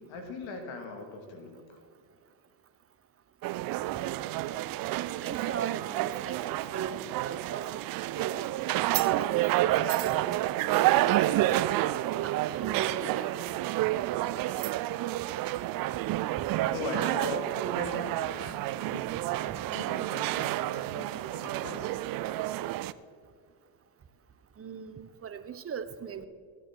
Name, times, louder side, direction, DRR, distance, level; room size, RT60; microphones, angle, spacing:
voice 1, 0.0-1.8 16.7-19.1 19.7-22.0, left 3 dB, 65° left, 4 dB, 2.4 m, -40 dB
sound 1, 3.4-22.9, right 15 dB, 45° right, 0.4 m, -29 dB
voice 2, 4.8-7.9 8.1-8.4 8.9-10.4 10.8-11.9 12.2-13.3 16.4-16.6 19.5-19.6 24.6-26.3, right 7 dB, 25° right, 11 dB, 0.9 m, -39 dB
15.5 x 9.6 x 4.5 m, 2.1 s
supercardioid pair, 85°, 50 cm